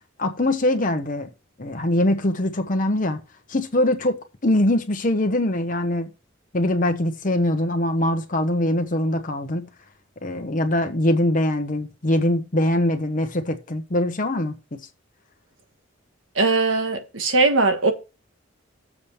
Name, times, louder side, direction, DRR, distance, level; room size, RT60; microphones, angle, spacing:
voice 1, 0.2-1.3 1.6-3.2 3.5-4.1 4.4-6.1 6.5-9.7 10.2-14.9, left 1 dB, 40° left, 0.9 m, -22 dB
voice 2, 16.4-17.9, right 3 dB, 85° right, 1.5 m, -20 dB
7.2 x 4.9 x 6.9 m
head